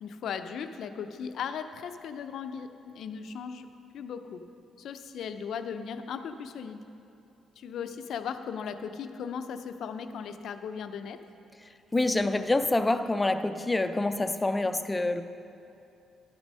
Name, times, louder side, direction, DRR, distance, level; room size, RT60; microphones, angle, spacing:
voice 1, 0.0-3.7 3.9-4.4 4.8-6.8 7.6-11.2, left 7 dB, 70° left, 9 dB, 0.5 m, -37 dB
voice 2, 11.9-15.2, left 2 dB, 15° left, 10 dB, 0.4 m, -26 dB
11.5 x 6.2 x 5.4 m, 2.7 s
cardioid pair, 90°, 0 cm